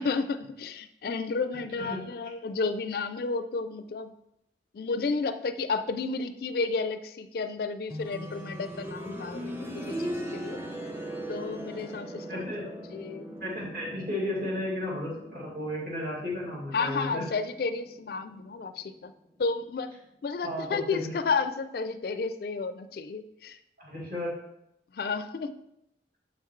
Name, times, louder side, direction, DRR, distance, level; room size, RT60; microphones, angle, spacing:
voice 1, 0.0-4.1 4.7-10.6 11.3-13.3 16.7-19.1 19.4-19.9 20.2-23.6 24.9-25.6, left 4 dB, 55° left, 11 dB, 0.4 m, -32 dB
sound 1, 7.9-18.7 20.0-20.1, equal, 10° right, 0.6 m, -39 dB
voice 2, 12.3-12.6 13.4-17.3 20.4-21.1 23.8-24.3, left 1 dB, 50° right, -4 dB, 2.4 m, -34 dB
7.2 x 5.7 x 3.1 m, 0.81 s
head